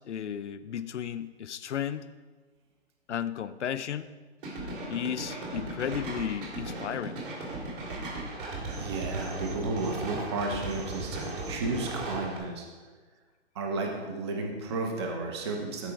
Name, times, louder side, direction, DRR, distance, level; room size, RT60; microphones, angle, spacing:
voice 1, 0.0-2.1 3.1-4.1 4.9-7.2, left 9 dB, 85° left, 14 dB, 0.6 m, -34 dB
sound 1, 4.4-12.4, right 2 dB, 50° right, 2.6 m, -37 dB
voice 2, 8.8-12.7 13.5-15.9, right 3 dB, 25° right, 2 dB, 0.8 m, -33 dB
12.5 x 5.0 x 4.7 m, 1.4 s
hypercardioid pair, 165°, 34 cm